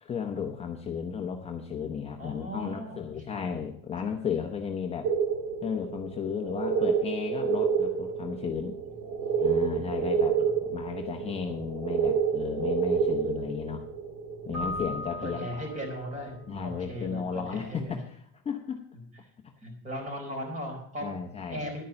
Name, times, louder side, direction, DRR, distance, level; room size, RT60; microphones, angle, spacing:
voice 1, 0.0-5.1 5.6-8.8 9.4-13.8 14.5-15.5 16.5-18.8 19.4-19.5 21.0-21.6, left 7 dB, 20° left, 2 dB, 0.9 m, -34 dB
voice 2, 2.2-3.4 9.0-9.9 10.4-10.5 15.1-18.0 19.6-21.1 21.5-21.8, equal, 25° right, 2 dB, 4.2 m, -38 dB
sound 1, 5.0-15.5 15.8-15.9 16.2-16.3 16.8-17.1, right 6 dB, 65° right, 3.3 m, -29 dB
Keyboard (musical), 14.5-16.3, left 1 dB, 50° right, 4.8 m, -37 dB
11.0 x 9.3 x 5.7 m, 0.65 s
cardioid pair, 165°, 33 cm